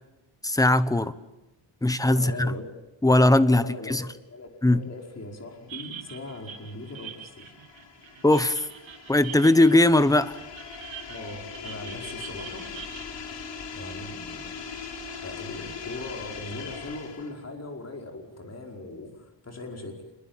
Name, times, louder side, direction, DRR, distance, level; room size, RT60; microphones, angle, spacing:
voice 1, 0.4-1.1 1.8-2.5 3.0-4.1 4.6-4.8 8.2-8.7 9.1-10.4, left 1 dB, 10° left, 1.1 m, -20 dB
voice 2, 2.1-2.7 3.5-4.0 4.3-7.5 11.1-12.6 13.7-14.5 15.2-20.0, left 2 dB, 35° left, 5.0 m, -39 dB
sound 1, 5.5-17.4, left 6 dB, 70° left, 4.8 m, -41 dB
sound 2, 5.7-13.1, right 9 dB, 75° right, 2.4 m, -44 dB
27.0 x 22.0 x 9.0 m
wide cardioid pair, 140°, 45 cm